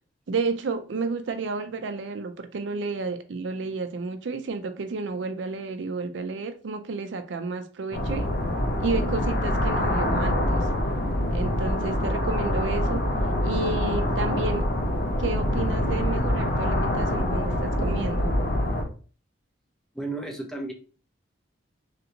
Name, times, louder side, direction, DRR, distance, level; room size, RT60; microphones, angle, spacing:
voice 1, 0.3-8.3 8.8-10.6 11.3-13.0 13.4-14.7 15.2-18.4, right 4 dB, 75° right, 0.4 m, -31 dB
sound 1, 7.9-18.8, left 1 dB, 50° left, 0.6 m, -25 dB
voice 2, 19.9-20.7, right 2 dB, 5° left, 0.5 m, -33 dB
3.3 x 2.6 x 2.8 m
head